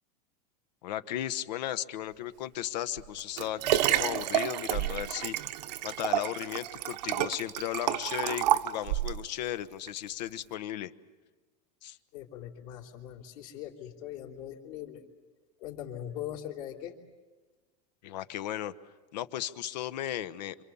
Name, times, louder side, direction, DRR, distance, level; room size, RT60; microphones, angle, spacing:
voice 1, 0.8-5.3 5.8-10.9 11.8-12.0 18.0-18.7 19.1-20.6, left 12 dB, 80° left, 13 dB, 1.2 m, -35 dB
Liquid, 3.0-9.2 9.9-10.0, right 13 dB, 80° right, 1.0 m, -29 dB
voice 2, 12.1-15.0 15.6-17.0, left 11 dB, 60° left, -2 dB, 3.3 m, -41 dB
28.0 x 26.0 x 7.1 m, 1.3 s
supercardioid pair, 175°, 21 cm